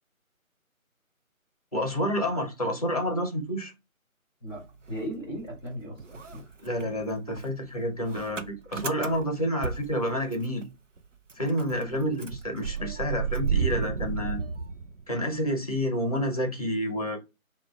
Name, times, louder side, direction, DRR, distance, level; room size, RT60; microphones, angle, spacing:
voice 1, 1.7-3.7 6.6-10.7 11.4-14.4 15.1-17.2, equal, 25° left, 0.7 m, -29 dB
voice 2, 4.4-6.5 11.8-12.1, equal, ahead, 2.0 m, -38 dB
Motor vehicle (road) / Engine starting, 4.5-5.7 6.0-10.6 11.0-11.1 11.3-15.4, right 6 dB, 60° right, 0.7 m, -33 dB
5.8 x 2.4 x 2.3 m
figure-of-eight pair, 160°, 42 cm